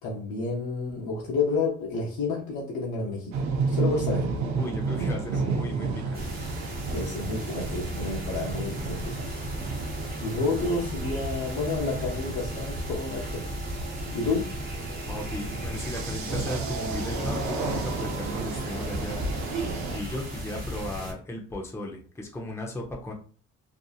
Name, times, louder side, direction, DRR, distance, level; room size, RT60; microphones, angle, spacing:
voice 1, 0.0-4.3 6.9-9.3 10.2-13.4 14.1-14.5, left 3 dB, 85° left, -3 dB, 0.7 m, -30 dB
sound 1, 3.3-20.0, right 4 dB, 65° right, 0.6 m, -32 dB
voice 2, 4.6-6.5 15.0-19.2 19.9-23.1, left 1 dB, 10° left, 0 dB, 0.6 m, -36 dB
sound 2, 6.1-21.1, equal, 30° right, 1.1 m, -35 dB
2.7 x 2.4 x 2.3 m, 0.42 s
cardioid pair, 90°, 30 cm